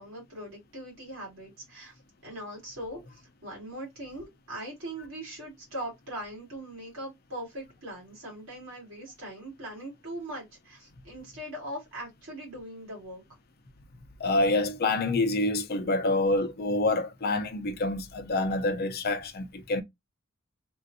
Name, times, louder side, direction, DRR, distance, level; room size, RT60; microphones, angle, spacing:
voice 1, 0.0-13.2, right 1 dB, 80° right, 2.4 m, -41 dB
voice 2, 14.2-19.8, left 2 dB, 50° left, 0.6 m, -27 dB
3.7 x 2.5 x 2.6 m
head